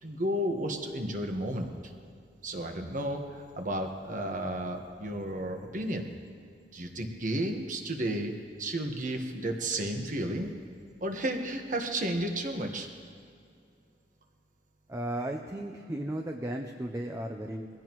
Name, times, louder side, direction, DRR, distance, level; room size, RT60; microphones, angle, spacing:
voice 1, 0.0-1.7 2.4-6.0 6.7-8.3 8.6-10.5 11.0-12.9, right 1 dB, 45° right, 3 dB, 1.3 m, -32 dB
voice 2, 14.9-17.7, right 1 dB, 15° right, 3 dB, 0.6 m, -35 dB
22.0 x 16.0 x 3.1 m, 2.3 s
head